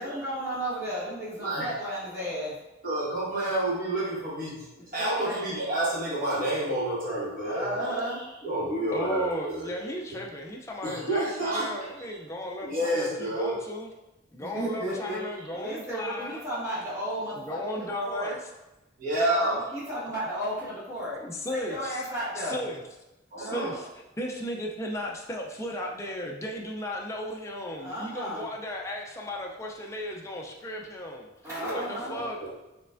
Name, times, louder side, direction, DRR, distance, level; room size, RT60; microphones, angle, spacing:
voice 1, 0.0-2.6 3.3-3.4 4.8-5.4 7.4-8.2 14.4-15.2 15.5-18.4 19.3-21.2 21.5-22.7 23.3-23.7 27.8-28.5 31.4-32.2, equal, 15° right, -9 dB, 1.4 m, -34 dB
voice 2, 1.4-1.7 2.8-4.6 4.9-8.0 8.4-10.2 10.8-11.7 12.1-12.2 12.6-13.7 14.6-14.7 19.0-19.6 23.3-23.8 31.6-32.5, right 1 dB, 50° right, -8 dB, 1.5 m, -29 dB
voice 3, 8.9-13.9 14.3-16.4 17.5-18.4 21.2-22.0 22.5-22.8 23.4-23.8 24.2-31.3 31.9-32.4, left 1 dB, 15° left, 0 dB, 0.4 m, -35 dB
4.4 x 3.2 x 2.5 m, 0.99 s
head